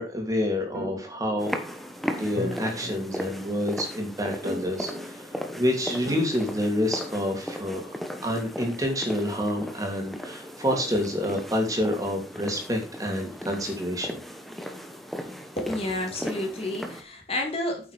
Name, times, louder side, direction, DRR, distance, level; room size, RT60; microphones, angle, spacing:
voice 1, 0.0-1.5 2.2-4.9 5.5-7.8 8.2-14.2, left 1 dB, 20° right, 2 dB, 2.9 m, -28 dB
sound 1, 0.7-7.5, equal, 90° right, 4.8 m, -38 dB
sound 2, 1.4-17.0, equal, ahead, 1.3 m, -37 dB
voice 2, 15.6-17.9, left 1 dB, 35° left, 1 dB, 3.0 m, -30 dB
9.3 x 7.7 x 5.0 m, 0.32 s
head